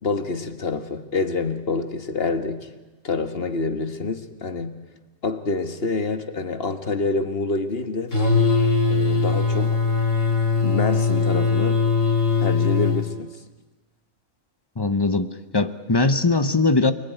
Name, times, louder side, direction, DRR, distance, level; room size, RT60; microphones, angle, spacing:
voice 1, 0.0-2.7 3.0-4.8 5.2-8.2 8.9-9.8 10.6-11.8 12.4-13.3, left 3 dB, 45° left, 1.6 m, -27 dB
sound 1, 8.1-13.0, left 4 dB, 65° left, 4.5 m, -20 dB
voice 2, 14.8-16.9, left 3 dB, 20° left, 0.8 m, -21 dB
28.0 x 20.0 x 9.3 m
omnidirectional pair, 1.4 m